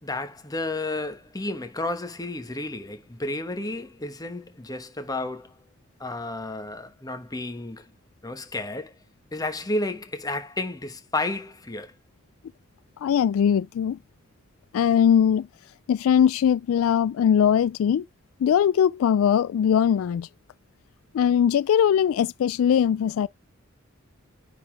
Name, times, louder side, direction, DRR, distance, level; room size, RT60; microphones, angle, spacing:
voice 1, 0.0-5.6 6.0-7.9 8.2-8.9 9.3-11.9, left 2 dB, 20° left, 1.2 m, -32 dB
voice 2, 13.0-14.0 14.7-15.5 15.9-18.0 18.4-20.3 21.1-23.3, left 8 dB, 90° left, 0.3 m, -20 dB
9.6 x 3.9 x 3.3 m
head